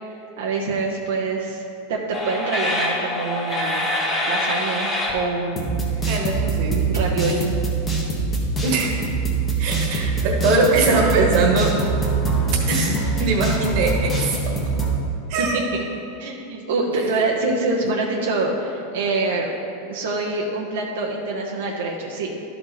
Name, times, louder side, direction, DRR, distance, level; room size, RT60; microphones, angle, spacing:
voice 1, 0.4-1.6 1.9-3.9 4.3-6.1 6.9-7.6 15.4-15.5 16.2-19.5 19.9-22.4, right 3 dB, 85° right, -3 dB, 1.0 m, -25 dB
sound 1, 2.1-5.1 5.6-14.9, right 2 dB, 20° left, 1.4 m, -23 dB
voice 2, 6.1-6.8 8.6-9.0 9.6-11.7 12.7-14.1 14.4-14.5 15.3-15.6 17.2-17.3, right 3 dB, 50° right, 0 dB, 1.4 m, -21 dB
12.0 x 4.4 x 4.2 m, 2.7 s
supercardioid pair, 145°, 0 cm